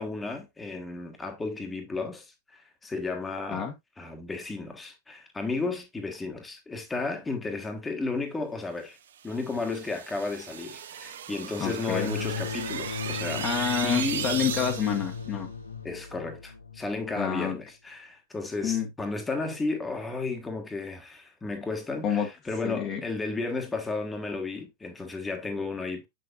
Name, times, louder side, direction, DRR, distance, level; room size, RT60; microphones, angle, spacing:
voice 1, 0.0-3.7 4.0-9.0 9.2-14.3 15.8-26.1, left 3 dB, 10° left, 1.6 m, -33 dB
sound 1, 9.2-15.2, right 9 dB, 60° right, 0.7 m, -36 dB
voice 2, 11.6-12.1 13.2-15.5 17.2-17.6 18.6-18.9 22.0-22.3 22.6-23.0, left 7 dB, 30° left, 1.5 m, -28 dB
sound 2, 11.9-17.3, left 6 dB, 75° left, 0.6 m, -36 dB
7.4 x 6.6 x 2.5 m
figure-of-eight pair, 90°, 0 cm